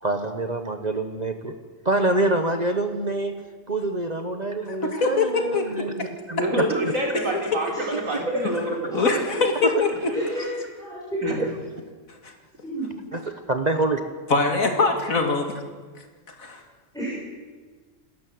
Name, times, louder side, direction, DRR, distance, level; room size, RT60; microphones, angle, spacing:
voice 1, 0.0-1.5 1.8-3.3 3.7-6.9 7.9-8.0 9.0-9.2 9.6-9.8 11.4-11.5 13.1-14.0, right 2 dB, 35° right, 7 dB, 1.2 m, -26 dB
voice 2, 4.8-6.1 7.5-7.6 8.9-10.1 12.2-12.3 14.3-15.5 16.4-16.6, left 4 dB, 80° left, 5 dB, 2.7 m, -23 dB
voice 3, 6.4-9.1 11.2-11.4, right 1 dB, 70° right, 0 dB, 4.5 m, -27 dB
voice 4, 7.7-8.4 8.9-9.1 10.1-11.2 12.6-13.0 16.9-17.2, right 1 dB, ahead, -9 dB, 8.0 m, -31 dB
28.5 x 12.5 x 7.8 m, 1.4 s
omnidirectional pair, 1.4 m